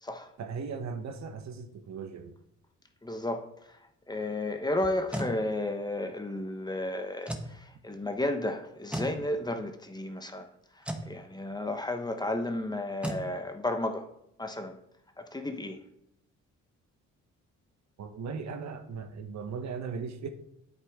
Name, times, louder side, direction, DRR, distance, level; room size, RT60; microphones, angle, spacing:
voice 1, 0.4-2.3 18.0-20.3, right 5 dB, 65° right, 1.1 m, -38 dB
voice 2, 3.0-3.5 4.1-10.5 11.1-14.1 14.4-14.8 15.2-15.8, left 1 dB, 15° left, 1.0 m, -33 dB
sound 1, 4.8-5.4 7.2-7.5 8.9-9.2 10.8-11.1 13.0-13.3, right 1 dB, 5° right, 1.2 m, -34 dB
9.5 x 8.2 x 3.6 m
cardioid pair, 90°, 30 cm